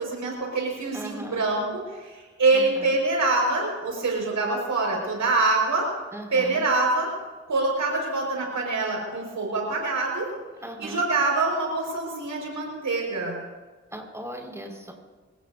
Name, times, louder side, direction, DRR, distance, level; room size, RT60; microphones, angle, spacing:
voice 1, 0.0-1.6 2.0-5.8 6.3-7.1 7.5-10.3 10.8-13.4, right 3 dB, 90° right, -1 dB, 5.2 m, -25 dB
voice 2, 0.9-1.4 2.5-2.9 6.1-6.6 10.6-11.0 13.9-14.9, right 1 dB, 10° right, 0 dB, 5.2 m, -38 dB
26.0 x 16.0 x 2.7 m, 1.3 s
cardioid pair, 45°, 29 cm